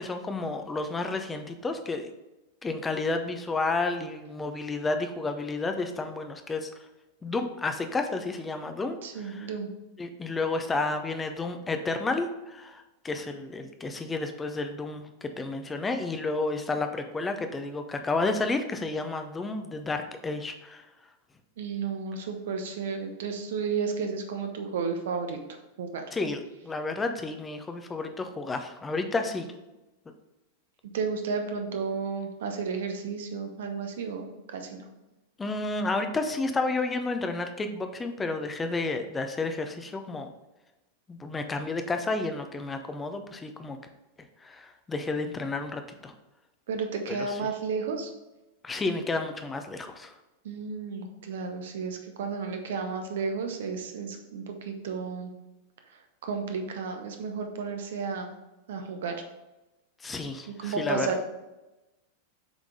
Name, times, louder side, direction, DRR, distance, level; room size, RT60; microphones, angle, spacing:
voice 1, 0.0-2.1 2.6-6.7 7.2-9.5 10.0-20.9 26.1-29.5 35.4-40.3 41.1-43.8 44.4-46.1 47.1-47.4 48.6-50.1 60.0-61.2, left 3 dB, 15° left, 6 dB, 0.7 m, -31 dB
voice 2, 9.0-9.7 21.6-25.4 25.8-26.0 30.9-34.8 46.7-48.1 50.4-55.3 56.2-58.3 58.7-59.2 60.5-61.2, right 5 dB, 60° right, 5 dB, 0.9 m, -32 dB
7.2 x 3.7 x 3.7 m, 1.0 s
figure-of-eight pair, 90°, 0 cm